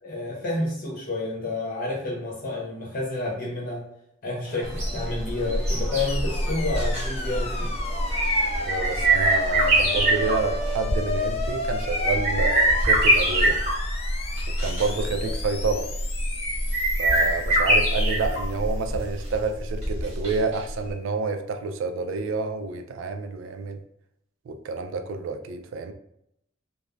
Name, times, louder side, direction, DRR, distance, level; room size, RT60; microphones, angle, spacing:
voice 1, 0.0-3.8 4.2-7.7 15.2-15.3, left 2 dB, 50° left, -3 dB, 0.9 m, -30 dB
sound 1, 4.5-10.7, equal, 5° right, 0.8 m, -44 dB
sound 2, 4.7-20.6 20.9-21.0, right 1 dB, 35° right, 1.0 m, -24 dB
sound 3, 6.1-18.3, left 2 dB, 30° left, 0.3 m, -34 dB
voice 2, 8.6-13.6 14.6-15.9 17.0-23.8 24.5-25.9, right 4 dB, 70° right, 7 dB, 0.3 m, -29 dB
3.2 x 2.0 x 2.4 m, 0.76 s
head